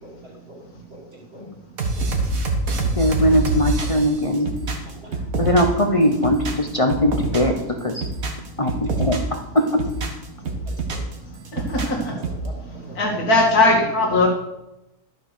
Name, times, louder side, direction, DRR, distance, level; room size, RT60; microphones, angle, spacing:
voice 1, 0.0-0.6 0.9-1.4 2.0-2.1 2.9-3.3 4.2-4.3 5.0-5.1 7.8-7.9 10.9-11.1 12.1-12.6 12.9-13.0, equal, 40° right, -3 dB, 3.6 m, -45 dB
sound 1, 1.8-5.8 6.1-7.6 7.9-9.4 9.7-11.1 11.4-12.5, right 2 dB, 65° right, 1.9 m, -25 dB
voice 2, 3.0-4.5 5.4-8.0 8.6-9.2 9.5-9.8 12.1-12.2, equal, 30° left, 5 dB, 0.8 m, -20 dB
voice 3, 11.5-12.3 12.7-14.3, left 2 dB, 75° left, -1 dB, 2.7 m, -20 dB
12.0 x 6.7 x 6.4 m, 0.93 s
omnidirectional pair, 1.6 m